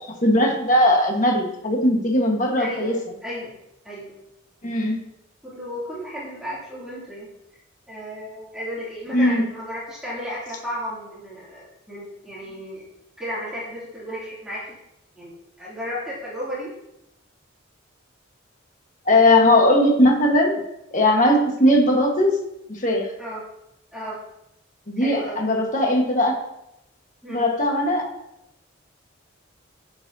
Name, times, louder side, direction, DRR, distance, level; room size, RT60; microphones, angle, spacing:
voice 1, 0.2-2.9 4.6-5.0 9.1-9.4 19.1-20.6 20.9-22.4 22.7-23.1 24.9-26.3 27.3-28.0, left 1 dB, 40° left, 1 dB, 1.4 m, -19 dB
voice 2, 2.6-3.6 3.8-4.1 5.4-7.3 7.9-12.8 13.2-14.7 15.2-16.7 23.2-23.4 23.9-24.2 25.0-25.4 27.2-27.5, equal, 5° right, -9 dB, 2.8 m, -34 dB
11.0 x 7.1 x 2.8 m, 0.84 s
head